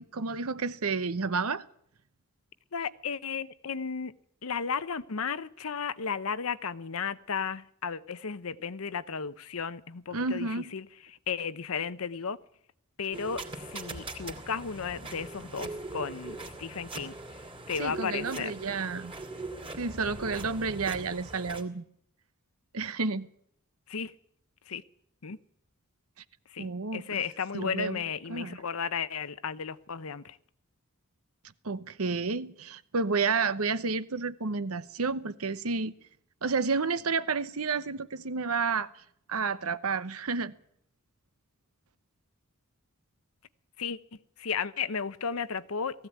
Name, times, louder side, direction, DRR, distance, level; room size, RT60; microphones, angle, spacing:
voice 1, 0.0-1.6 10.1-10.7 17.8-19.1 19.8-21.8 22.7-23.3 26.6-27.2 27.5-28.0 28.3-28.6 31.6-35.9 36.4-38.9 39.3-40.5, right 4 dB, 80° right, 0.9 m, -30 dB
voice 2, 2.7-4.1 4.4-10.9 11.3-12.4 13.0-17.1 17.7-18.5 23.9-24.1 24.7-24.8 25.2-25.4 26.5-30.4 43.8-44.0 44.4-46.1, left 6 dB, 70° left, 0.8 m, -34 dB
sound 1, 13.1-21.6, right 2 dB, 25° right, 2.7 m, -41 dB
19.0 x 15.0 x 9.4 m
head